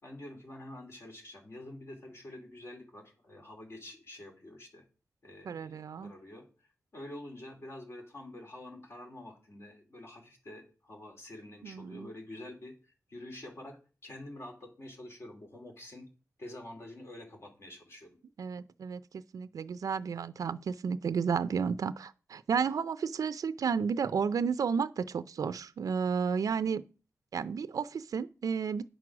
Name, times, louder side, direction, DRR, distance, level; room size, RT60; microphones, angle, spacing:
voice 1, 0.0-4.8 5.2-13.8 14.0-16.1 16.4-18.2, left 1 dB, 50° left, 2.9 m, -47 dB
voice 2, 5.5-6.1 11.6-12.1 18.4-26.8 27.3-28.8, right 6 dB, 90° right, 0.5 m, -32 dB
9.1 x 6.2 x 6.0 m
wide cardioid pair, 150°, 6 cm